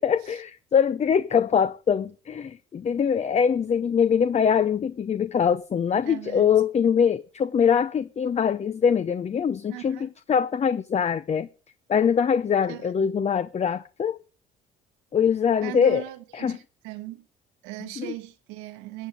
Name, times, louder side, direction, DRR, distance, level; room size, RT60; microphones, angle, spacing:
voice 1, 0.0-11.5 11.9-14.2 15.1-16.0 16.3-16.6 18.0-18.1, left 7 dB, 35° left, 0.7 m, -23 dB
voice 2, 6.0-6.5 9.7-10.1 12.7-12.9 15.6-17.3 17.6-19.1, right 16 dB, 85° right, 1.2 m, -39 dB
15.0 x 8.4 x 5.3 m
supercardioid pair, 70°, 20 cm